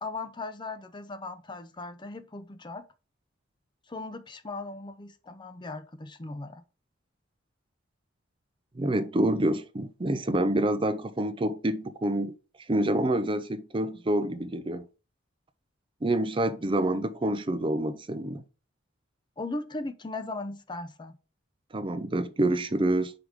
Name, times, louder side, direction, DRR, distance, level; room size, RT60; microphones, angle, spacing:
voice 1, 0.0-2.8 3.9-6.6 19.4-21.1, left 2 dB, 25° left, 0.6 m, -38 dB
voice 2, 8.8-12.3 12.7-14.8 16.0-18.4 21.7-23.1, right 1 dB, 25° right, 0.5 m, -27 dB
5.0 x 4.7 x 5.1 m
head